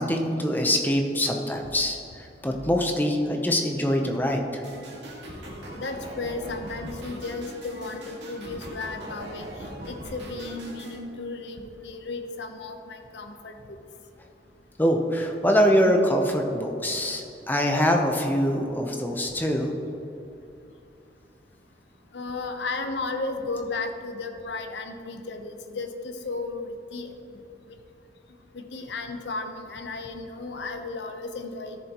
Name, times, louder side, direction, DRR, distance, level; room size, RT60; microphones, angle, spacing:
voice 1, 0.0-2.0 2.4-4.6 14.8-19.7, equal, 10° left, 2 dB, 0.8 m, -24 dB
sound 1, 4.6-11.0, right 1 dB, 90° right, 2.0 m, -40 dB
voice 2, 5.7-13.8 22.1-27.4 27.7-27.8 28.5-31.8, left 3 dB, 80° left, 5 dB, 0.9 m, -34 dB
13.0 x 7.0 x 3.0 m, 2.8 s
head